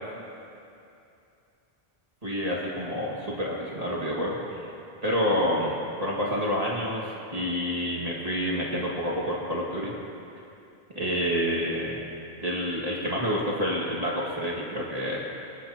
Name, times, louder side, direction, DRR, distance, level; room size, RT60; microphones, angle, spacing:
voice 1, 2.2-4.7 5.0-9.9 10.9-12.0 12.4-15.2, equal, 35° right, -5 dB, 2.2 m, -28 dB
23.0 x 19.5 x 2.9 m, 2.6 s
omnidirectional pair, 1.1 m